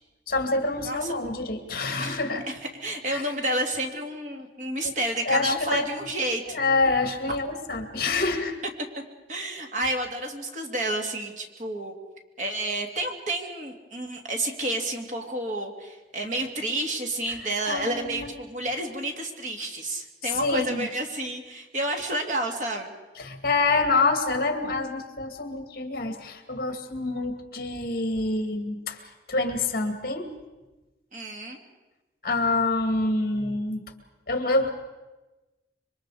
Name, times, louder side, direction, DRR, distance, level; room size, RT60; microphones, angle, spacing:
voice 1, 0.3-2.4 3.1-3.2 5.3-5.9 6.5-8.6 17.3-17.4 17.7-18.3 20.3-20.9 23.2-29.0 29.3-30.3 32.2-33.8 34.3-34.7, left 3 dB, 55° left, 6 dB, 2.2 m, -26 dB
voice 2, 2.0-6.4 9.3-11.9 12.4-22.9 31.1-31.6, right 1 dB, 45° right, 3 dB, 2.7 m, -30 dB
26.5 x 24.0 x 5.0 m, 1.1 s
head